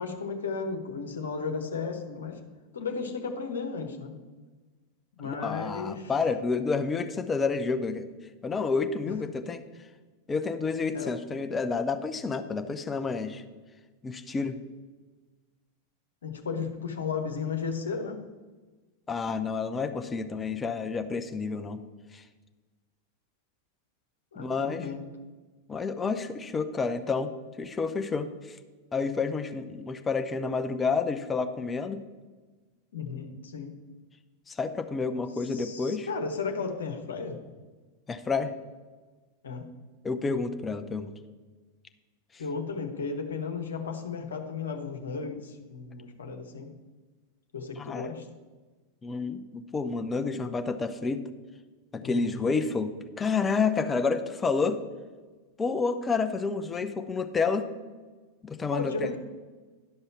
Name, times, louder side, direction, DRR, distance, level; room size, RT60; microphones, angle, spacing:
voice 1, 0.0-2.4 2.7-4.1 5.2-6.1 9.1-9.2 10.9-11.1 16.2-18.2 24.3-25.0 32.9-33.7 35.4-37.4 39.4-39.7 42.4-46.7 47.5-48.3 52.0-52.6 58.7-59.2, left 5 dB, 65° left, 5 dB, 1.2 m, -34 dB
voice 2, 5.2-8.0 8.4-9.6 10.3-13.4 14.0-14.6 19.1-21.8 22.1-22.2 24.4-24.9 25.7-27.3 27.6-28.6 28.9-32.0 34.5-36.1 38.1-38.5 40.0-41.1 47.8-48.2 49.0-51.2 51.9-54.8 55.6-57.7 58.4-58.9, left 4 dB, 15° left, 9 dB, 0.7 m, -29 dB
11.5 x 5.5 x 5.9 m, 1.3 s
figure-of-eight pair, 90°, 0 cm